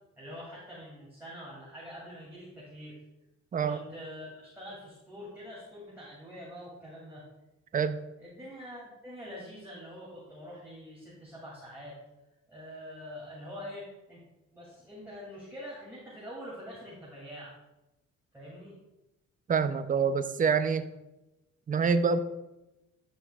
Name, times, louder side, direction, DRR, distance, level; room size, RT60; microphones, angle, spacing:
voice 1, 0.2-3.0 3.6-7.2 8.2-12.0 12.5-14.2 14.5-17.6 18.3-18.8, equal, 5° right, -7 dB, 2.5 m, -45 dB
voice 2, 19.5-20.9 21.7-22.2, right 5 dB, 25° right, 10 dB, 0.5 m, -26 dB
11.5 x 5.4 x 2.4 m, 0.97 s
cardioid pair, 90°, 30 cm